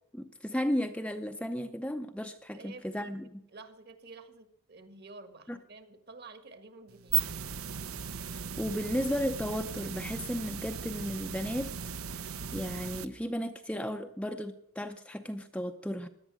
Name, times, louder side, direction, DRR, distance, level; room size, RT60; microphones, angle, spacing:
voice 1, 0.1-3.4 5.5-5.6 8.2-11.7 12.2-12.3 12.5-16.1, equal, 5° left, 6 dB, 0.6 m, -34 dB
voice 2, 2.5-7.2, right 3 dB, 45° right, 10 dB, 1.5 m, -51 dB
sound 1, 6.9-13.0, right 8 dB, 70° right, 0.8 m, -36 dB
17.0 x 11.0 x 7.6 m, 0.75 s
head